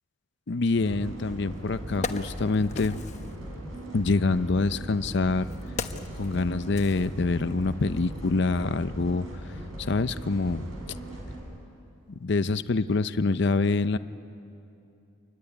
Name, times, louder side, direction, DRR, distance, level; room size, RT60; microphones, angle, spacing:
voice 1, 0.5-3.0 3.9-5.5 6.2-9.3 9.8-10.7 12.2-14.0, left 3 dB, 55° left, 12 dB, 0.6 m, -26 dB
sound 1, 0.8-11.4, right 1 dB, 70° right, 7.5 m, -39 dB
Wood, 1.2-1.3 1.7-3.4 4.3-7.7 8.0-8.1, left 3 dB, 35° left, 1.0 m, -38 dB
25.5 x 23.0 x 9.9 m, 2.7 s
head